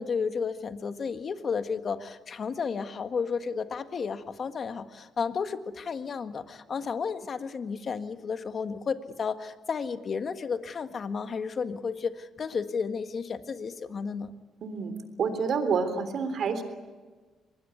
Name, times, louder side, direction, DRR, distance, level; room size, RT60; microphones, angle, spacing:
voice 1, 0.0-14.3, left 5 dB, 45° left, 9 dB, 1.7 m, -32 dB
voice 2, 14.6-14.9 15.2-16.6, right 5 dB, 60° right, 10 dB, 3.5 m, -28 dB
24.0 x 20.0 x 9.5 m, 1.4 s
cardioid pair, 90°, 0 cm